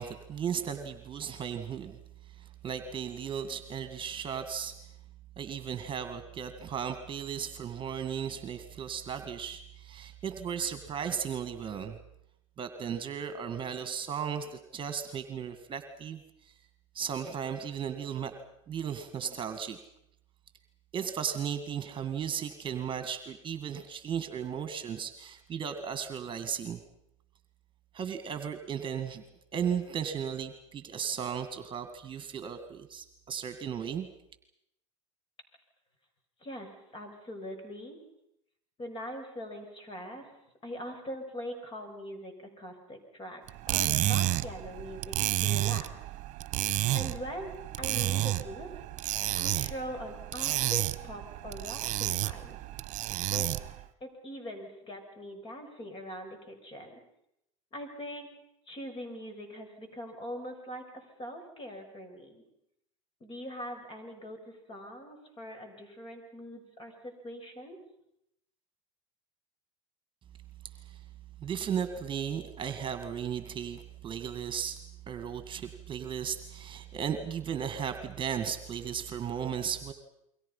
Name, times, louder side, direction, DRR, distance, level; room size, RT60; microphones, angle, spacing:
voice 1, 0.0-2.0 2.4-4.8 5.4-12.0 12.6-16.5 16.9-18.4 18.7-19.8 20.9-26.8 27.9-34.1 70.8-71.0 71.4-74.8 75.1-79.9, right 8 dB, 30° right, 9 dB, 2.1 m, -35 dB
voice 2, 36.4-38.0 38.8-43.4 43.7-45.9 46.9-48.7 49.4-52.6 53.3-57.0 57.7-58.3 58.7-62.4 63.2-67.8, equal, 30° left, 6 dB, 6.5 m, -42 dB
sound 1, 43.5-53.8, right 16 dB, 45° right, 1.3 m, -31 dB
29.0 x 23.5 x 5.7 m, 0.80 s
hypercardioid pair, 95°, 17 cm